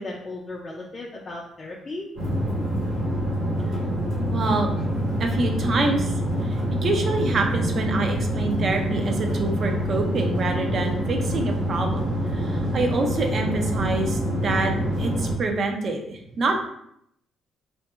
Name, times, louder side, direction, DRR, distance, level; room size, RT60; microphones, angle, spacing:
voice 1, 0.0-2.1, left 2 dB, 30° left, -3 dB, 0.4 m, -36 dB
sound 1, 2.2-15.3, equal, 85° right, 1.2 m, -26 dB
voice 2, 4.3-4.7 5.0-6.6 6.8-14.7 15.0-16.6, right 3 dB, 55° right, 3 dB, 0.5 m, -26 dB
2.7 x 2.5 x 2.3 m, 0.73 s
cardioid pair, 90°, 0 cm